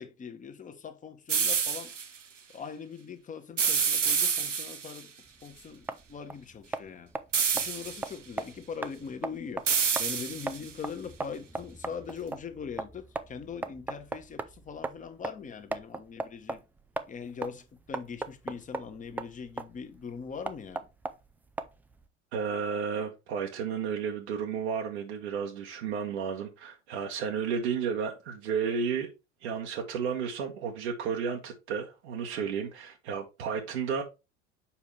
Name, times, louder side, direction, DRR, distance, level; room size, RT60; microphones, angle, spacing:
voice 1, 0.0-1.9 2.5-5.1 5.4-7.1 7.5-16.6 17.1-20.9, left 6 dB, 20° left, 1.1 m, -41 dB
sound 1, 1.3-2.1 3.6-5.0 7.3-8.1 9.7-10.7, right 6 dB, 90° right, 0.7 m, -28 dB
sound 2, 5.3-22.1, right 3 dB, 5° right, 0.3 m, -39 dB
voice 2, 22.3-29.1 29.4-34.0, right 6 dB, 65° right, 1.3 m, -32 dB
7.2 x 4.7 x 3.3 m
figure-of-eight pair, 75°, 36 cm